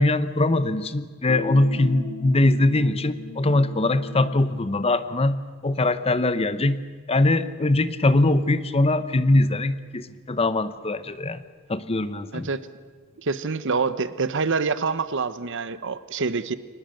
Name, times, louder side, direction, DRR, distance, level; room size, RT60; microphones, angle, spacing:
voice 1, 0.0-6.8 7.1-11.4 11.7-12.5, left 2 dB, 25° left, 13 dB, 0.8 m, -22 dB
sound 1, 1.3-4.4, left 2 dB, 80° left, 2.7 m, -36 dB
voice 2, 12.3-12.7 13.2-16.6, right 4 dB, 60° right, 14 dB, 0.9 m, -26 dB
24.0 x 19.5 x 7.8 m, 1.5 s
head